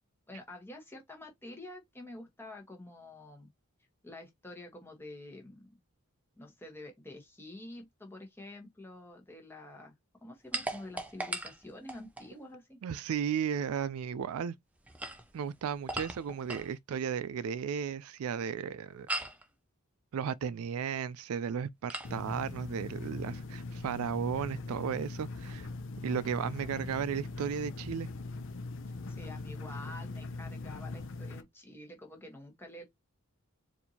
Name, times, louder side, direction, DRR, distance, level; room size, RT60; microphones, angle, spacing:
voice 1, 0.3-3.5 4.0-5.8 6.3-9.9 10.2-12.8 29.1-32.8, left 1 dB, 10° left, 1.1 m, -48 dB
sound 1, 10.5-12.3 14.8-16.7 19.1-19.5 21.9-22.2, right 1 dB, 5° right, 0.5 m, -38 dB
voice 2, 12.8-14.5 15.3-19.1 20.1-25.7 26.0-28.1, right 7 dB, 75° right, 0.3 m, -34 dB
sound 2, 22.0-31.4, left 3 dB, 55° left, 0.5 m, -41 dB
4.3 x 2.6 x 2.7 m
head